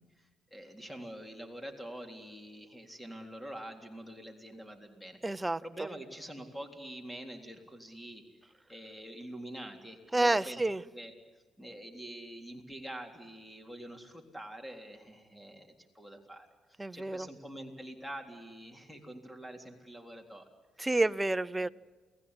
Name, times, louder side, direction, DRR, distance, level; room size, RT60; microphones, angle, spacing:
voice 1, 0.0-5.2 5.6-8.2 8.7-10.6 10.9-11.1 11.6-15.7 15.9-16.5 16.9-20.5 20.8-21.0, right 1 dB, 5° left, 5 dB, 3.7 m, -45 dB
voice 2, 5.2-5.6 10.1-10.8 16.8-17.3 20.8-21.7, right 2 dB, 15° right, 15 dB, 0.7 m, -29 dB
29.0 x 19.0 x 9.8 m, 1.4 s
cardioid pair, 90°, 0 cm